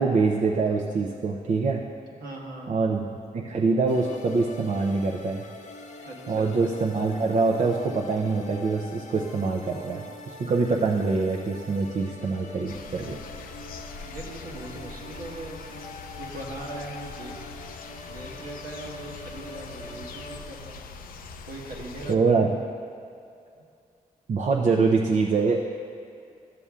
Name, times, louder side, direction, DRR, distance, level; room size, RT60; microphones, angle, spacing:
voice 1, 0.0-1.8 2.7-3.0 3.3-5.4 6.3-10.0 10.4-13.2 22.1-22.5 24.3-25.6, right 4 dB, 60° right, -2 dB, 0.6 m, -24 dB
voice 2, 2.2-2.8 6.0-6.6 14.0-15.9 16.1-17.5 18.1-20.8 21.5-22.5, right 2 dB, 80° right, -2 dB, 1.3 m, -40 dB
sound 1, 3.9-20.4, left 2 dB, 55° left, 0.8 m, -44 dB
sound 2, 12.7-22.2, left 4 dB, 85° left, 0.4 m, -42 dB
12.5 x 6.9 x 2.4 m, 2.4 s
cardioid pair, 60°, 15 cm